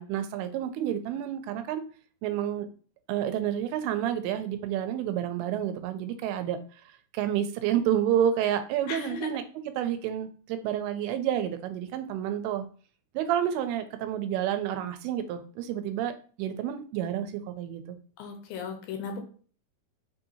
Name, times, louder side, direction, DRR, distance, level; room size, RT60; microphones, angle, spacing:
voice 1, 0.0-1.8 2.2-2.7 3.1-6.6 7.1-9.4 9.8-12.7 13.1-17.8, right 10 dB, 90° right, 8 dB, 2.6 m, -29 dB
voice 2, 8.9-9.3 18.2-19.2, left 5 dB, 75° left, 3 dB, 2.3 m, -36 dB
5.6 x 2.8 x 2.7 m, 0.42 s
omnidirectional pair, 4.4 m